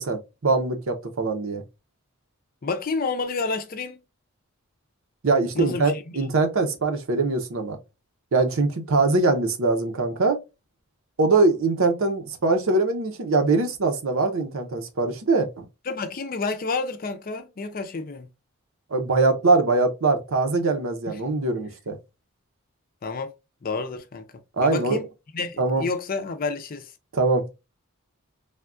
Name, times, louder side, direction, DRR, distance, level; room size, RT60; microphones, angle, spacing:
voice 1, 0.0-1.6 5.2-7.8 8.3-10.4 11.2-15.6 18.9-22.0 24.6-25.0 25.6-25.8 27.1-27.5, right 3 dB, 70° right, 0.7 m, -22 dB
voice 2, 2.6-4.0 5.5-6.2 15.9-18.3 21.1-21.2 23.0-23.3 23.6-24.3 24.6-25.0 25.3-26.9, left 4 dB, 40° left, 0.5 m, -29 dB
3.4 x 2.3 x 2.4 m
head